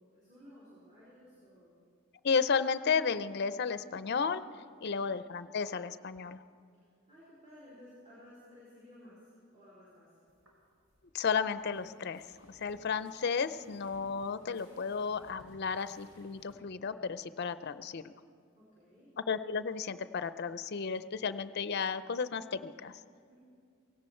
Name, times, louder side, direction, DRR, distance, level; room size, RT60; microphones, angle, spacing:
voice 1, 0.0-1.8 6.7-10.2 18.5-19.2 23.3-23.4, left 1 dB, 30° right, -10 dB, 4.3 m, -56 dB
voice 2, 2.2-4.4 4.8-6.4 11.1-12.2 12.5-18.1 19.3-22.9, left 5 dB, 50° left, 13 dB, 0.5 m, -33 dB
sound 1, 10.3-16.6, equal, 70° right, 4.4 m, -61 dB
17.5 x 17.0 x 4.4 m, 2.3 s
head